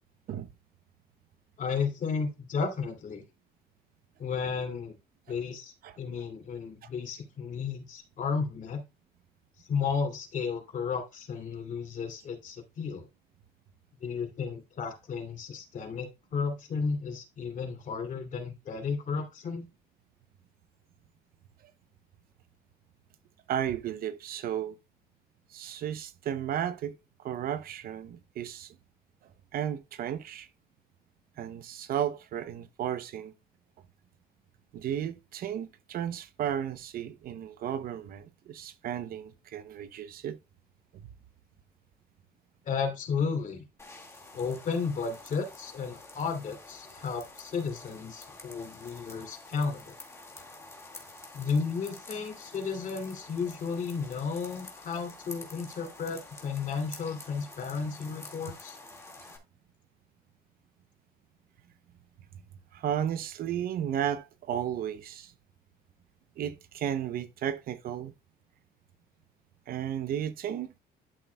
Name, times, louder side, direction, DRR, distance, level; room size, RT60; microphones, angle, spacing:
voice 1, 1.6-3.2 4.2-4.9 5.3-8.8 9.7-13.1 14.0-19.6 42.6-43.7 44.3-49.9 51.3-58.8, left 5 dB, 50° left, 2.7 m, -33 dB
voice 2, 23.5-24.8 25.5-28.8 29.5-30.5 31.4-33.3 34.7-40.4 40.9-41.0 62.7-65.3 66.4-68.1 69.7-70.7, right 10 dB, 60° right, 0.8 m, -34 dB
sound 1, 43.8-59.4, left 2 dB, 15° left, 2.0 m, -48 dB
11.5 x 6.1 x 2.3 m
cardioid pair, 110°, 17 cm